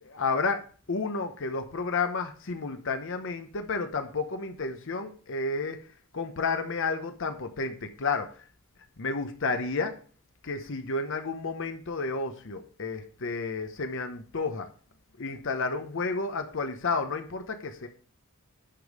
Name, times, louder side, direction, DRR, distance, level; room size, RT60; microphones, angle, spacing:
voice 1, 0.0-5.8 6.1-8.5 9.0-10.0 10.4-14.7 15.2-17.9, left 4 dB, 60° left, 7 dB, 0.9 m, -31 dB
10.5 x 5.3 x 4.8 m, 0.40 s
head